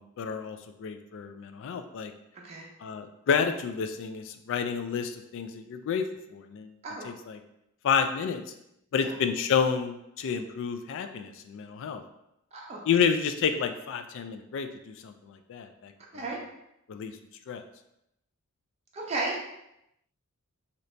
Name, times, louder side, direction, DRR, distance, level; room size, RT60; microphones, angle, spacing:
voice 1, 0.0-2.1 2.8-6.1 6.3-6.7 7.0-7.4 7.8-8.4 8.9-12.0 12.9-15.9 16.9-17.2 17.5-17.6, left 6 dB, 60° left, 8 dB, 0.3 m, -30 dB
voice 2, 12.5-12.9 16.1-16.4 18.9-19.4, right 2 dB, 30° right, -3 dB, 0.6 m, -34 dB
2.9 x 2.6 x 3.2 m, 0.82 s
head